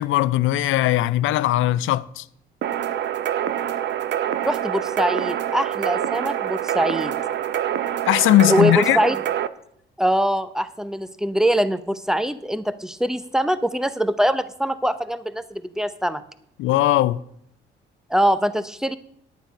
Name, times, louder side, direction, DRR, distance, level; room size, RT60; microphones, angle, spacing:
voice 1, 0.0-2.2 8.1-9.0 16.6-17.2, left 15 dB, 85° left, 0.5 m, -19 dB
sound 1, 2.6-9.5, right 10 dB, 65° right, 0.6 m, -25 dB
voice 2, 4.4-7.1 8.5-9.2 10.0-16.2 18.1-19.0, equal, 5° right, 0.6 m, -23 dB
9.7 x 9.0 x 5.2 m
cardioid pair, 90°, 20 cm